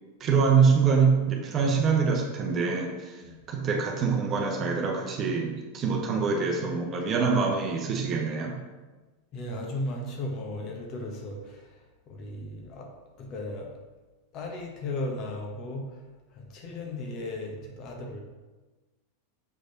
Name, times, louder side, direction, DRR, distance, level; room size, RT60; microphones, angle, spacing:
voice 1, 0.2-3.2 3.5-8.6, right 5 dB, 30° right, 1 dB, 1.0 m, -25 dB
voice 2, 9.3-12.9 13.2-13.7 14.3-16.0 16.3-18.2, left 1 dB, 35° left, 1 dB, 1.4 m, -36 dB
7.4 x 5.1 x 4.0 m, 1.2 s
figure-of-eight pair, 90°, 0 cm